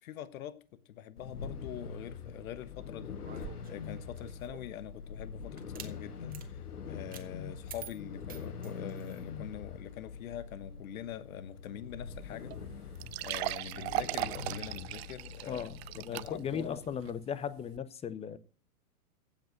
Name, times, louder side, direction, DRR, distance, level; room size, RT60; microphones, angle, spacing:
voice 1, 0.0-12.5 13.2-15.7 15.9-16.8, left 11 dB, 65° left, 1.2 m, -44 dB
sound 1, 1.2-17.1, left 5 dB, 90° left, 1.3 m, -44 dB
sound 2, 3.2-4.8 5.6-5.9 6.3-6.5 7.1-7.3 7.7-9.2, right 9 dB, 20° right, 1.6 m, -48 dB
sound 3, 12.1-12.2 12.5-12.6 13.0-16.6 17.1-17.2 17.8-17.9, right 19 dB, 45° right, 0.5 m, -37 dB
voice 2, 15.5-18.4, left 7 dB, 15° left, 0.7 m, -37 dB
16.0 x 5.4 x 7.7 m
hypercardioid pair, 110°, 44 cm